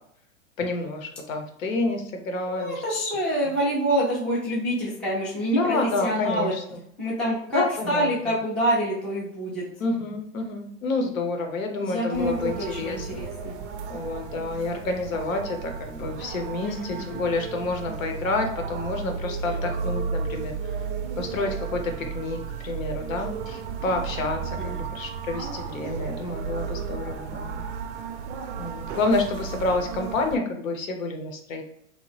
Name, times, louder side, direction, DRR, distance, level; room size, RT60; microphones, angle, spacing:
voice 1, 0.6-2.7 5.6-6.8 7.5-8.1 9.8-13.2 13.9-20.5 21.2-27.6 28.6-31.6, left 2 dB, 90° left, 4 dB, 0.8 m, -29 dB
voice 2, 2.5-6.6 7.0-9.7 11.8-13.7 16.6-17.2 24.6-24.8, equal, 5° left, -7 dB, 0.3 m, -27 dB
sound 1, 12.1-30.4, right 5 dB, 60° right, 0.5 m, -34 dB
2.8 x 2.1 x 3.1 m, 0.70 s
hypercardioid pair, 130°, 40 cm